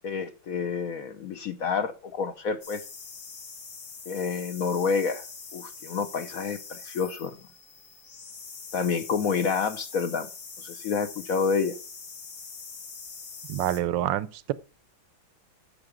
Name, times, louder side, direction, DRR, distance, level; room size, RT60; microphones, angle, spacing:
voice 1, 0.0-2.8 4.1-5.2 5.5-7.3 8.7-10.3 10.6-11.7, left 5 dB, 60° left, 0.9 m, -28 dB
sound 1, 2.6-13.8, left 5 dB, 85° left, 2.9 m, -43 dB
voice 2, 13.5-14.5, right 12 dB, 75° right, 1.3 m, -27 dB
10.5 x 6.8 x 5.0 m
omnidirectional pair, 2.2 m